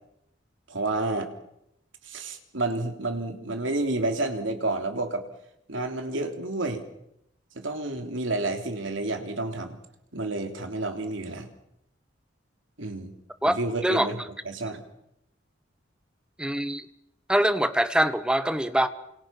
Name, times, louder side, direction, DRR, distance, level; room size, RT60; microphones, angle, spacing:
voice 1, 0.7-1.3 2.0-5.2 5.7-6.8 7.5-9.8 10.1-11.5 12.8-13.1 13.5-14.2 14.4-14.8, right 2 dB, 75° right, 3.3 m, -30 dB
voice 2, 13.4-14.1 16.4-16.8 17.3-18.9, right 1 dB, 5° right, 1.0 m, -24 dB
29.0 x 26.5 x 5.9 m
head